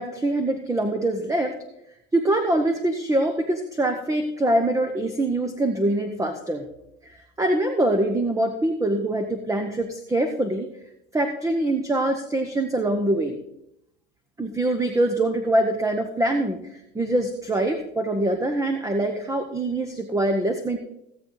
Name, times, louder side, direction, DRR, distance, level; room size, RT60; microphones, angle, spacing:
voice 1, 0.0-1.6 2.1-6.7 7.0-10.7 11.1-13.4 14.4-20.8, right 1 dB, 10° right, 7 dB, 0.9 m, -24 dB
16.5 x 8.0 x 4.0 m, 0.81 s
hypercardioid pair, 100°, 41 cm